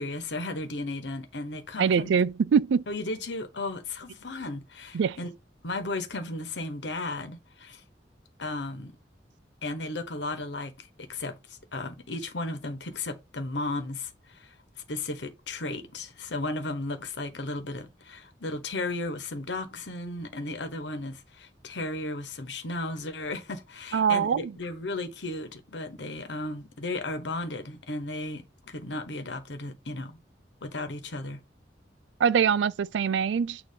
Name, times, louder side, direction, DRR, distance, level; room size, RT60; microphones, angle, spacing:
voice 1, 0.0-2.1 2.9-5.3 5.6-7.8 8.4-9.0 9.6-14.5 14.9-30.2 30.6-31.4, left 2 dB, 80° left, 1.2 m, -35 dB
voice 2, 1.8-2.8 4.9-5.2 23.9-24.5 32.2-33.6, right 7 dB, 85° right, 0.4 m, -23 dB
6.7 x 2.8 x 5.2 m
head